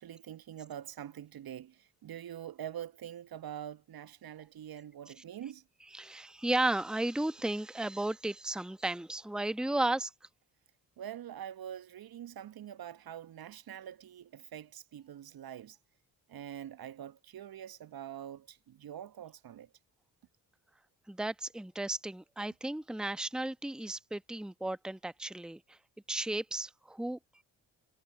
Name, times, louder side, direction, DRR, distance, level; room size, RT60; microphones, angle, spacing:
voice 1, 0.0-5.6 11.0-15.8 16.3-19.7, right 10 dB, 45° right, 1.4 m, -45 dB
voice 2, 5.9-10.1 21.1-25.8 26.1-27.2, right 1 dB, ahead, 1.2 m, -34 dB
figure-of-eight pair, 40°, 49 cm